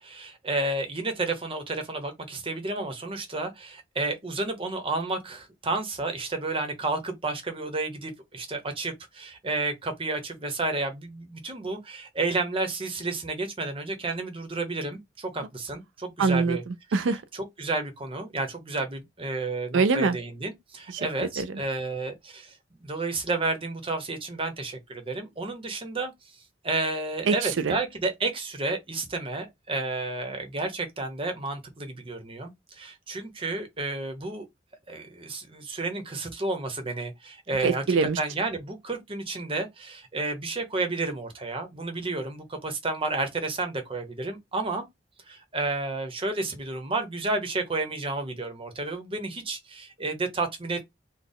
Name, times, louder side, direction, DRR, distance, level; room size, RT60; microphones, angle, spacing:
voice 1, 0.0-16.6 17.6-26.1 26.6-34.5 34.9-37.8 38.2-44.8 45.3-50.9, right 3 dB, 30° right, 0.9 m, -31 dB
voice 2, 16.2-17.2 19.7-20.2 20.9-21.1 21.4-21.6 27.2-27.8 37.6-38.2, right 4 dB, 90° right, 0.4 m, -24 dB
4.2 x 2.2 x 3.5 m
head